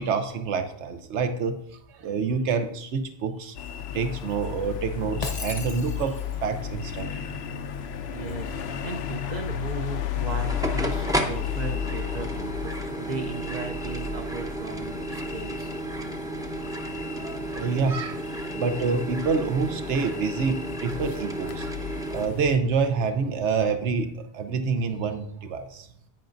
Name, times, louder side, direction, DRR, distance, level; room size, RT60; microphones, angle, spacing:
voice 1, 0.0-1.5 1.9-3.6 3.9-6.2 6.4-7.3 17.1-18.2 18.5-21.7 22.1-25.9, right 5 dB, 80° right, 7 dB, 1.1 m, -27 dB
sound 1, 3.6-22.6, left 9 dB, 70° left, 0.8 m, -34 dB
Shatter, 5.2-6.4, left 3 dB, 40° left, 0.8 m, -36 dB
voice 2, 8.1-15.7, right 5 dB, 45° right, 5 dB, 0.7 m, -37 dB
sound 2, 10.1-22.3, right 1 dB, 5° right, 0.6 m, -33 dB
10.5 x 8.9 x 2.6 m, 0.71 s
omnidirectional pair, 1.2 m